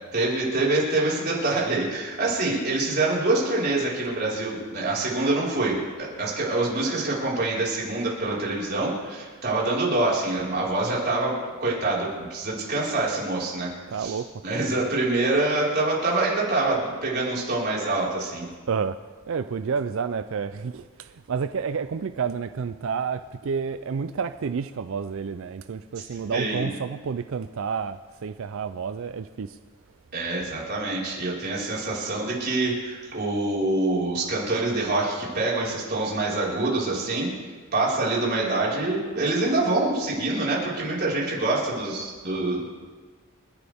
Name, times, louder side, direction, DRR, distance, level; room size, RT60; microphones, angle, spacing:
voice 1, 0.1-13.7 14.0-18.5 26.0-26.1 26.3-26.7 30.1-37.3 37.7-42.6, right 2 dB, 45° right, 4.8 m, -25 dB
voice 2, 13.9-14.3 18.7-19.0 19.3-29.6, right 6 dB, 60° right, 0.4 m, -30 dB
29.5 x 11.0 x 3.6 m
head